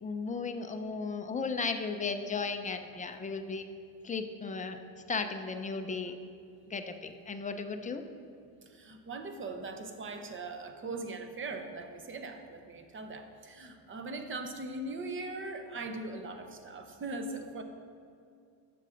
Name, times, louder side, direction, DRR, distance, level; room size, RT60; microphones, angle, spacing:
voice 1, 0.0-3.7 4.0-4.8 5.1-6.1 6.7-8.0, left 4 dB, 15° left, 6 dB, 0.4 m, -35 dB
voice 2, 8.7-17.6, right 2 dB, 25° right, 6 dB, 0.8 m, -40 dB
11.0 x 7.7 x 3.8 m, 2.3 s
cardioid pair, 130°, 48 cm